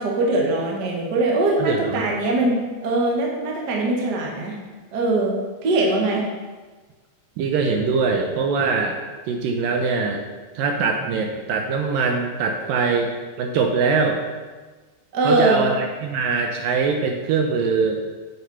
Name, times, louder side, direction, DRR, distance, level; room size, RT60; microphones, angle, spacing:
voice 1, 0.0-4.6 4.9-6.2 15.1-15.6, right 2 dB, 50° right, -1 dB, 1.2 m, -21 dB
voice 2, 1.6-2.1 7.4-9.0 9.3-10.3 10.5-14.2 15.2-18.0, right 4 dB, 75° right, 3 dB, 2.2 m, -22 dB
8.2 x 7.8 x 5.5 m, 1.3 s
omnidirectional pair, 4.4 m